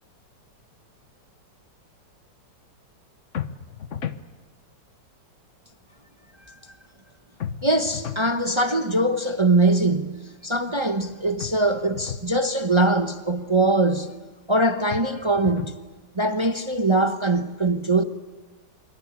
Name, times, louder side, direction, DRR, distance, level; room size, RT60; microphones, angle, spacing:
sound 1, 3.3-4.3 7.4-8.3 11.4-12.3 14.9-15.8, left 8 dB, 45° left, 1.2 m, -34 dB
voice 1, 7.6-14.1 14.5-15.8 16.2-18.0, right 2 dB, 25° right, 0.7 m, -22 dB
26.0 x 23.5 x 8.4 m
omnidirectional pair, 2.0 m